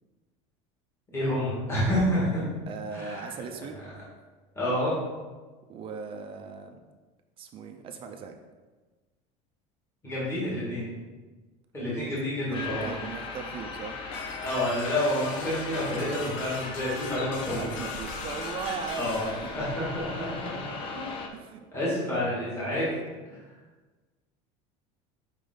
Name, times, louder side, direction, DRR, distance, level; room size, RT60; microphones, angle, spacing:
voice 1, 1.1-2.4 2.9-3.3 4.6-5.0 10.0-10.9 11.7-12.9 14.4-17.7 19.0-20.6 20.9-21.0 21.7-22.9, left 1 dB, 15° left, -9 dB, 2.0 m, -29 dB
voice 2, 2.7-3.8 5.7-6.8 7.4-8.3 12.0-12.1 12.4-14.0 17.5-19.6 21.3-21.7 22.7-23.1 23.3-23.4, right 5 dB, 35° right, 5 dB, 0.5 m, -38 dB
sound 1, 12.5-21.3, left 4 dB, 30° left, 0.7 m, -38 dB
sound 2, 14.1-19.3, left 4 dB, 80° left, 0.9 m, -40 dB
5.3 x 5.1 x 3.9 m, 1.3 s
cardioid pair, 160°, 16 cm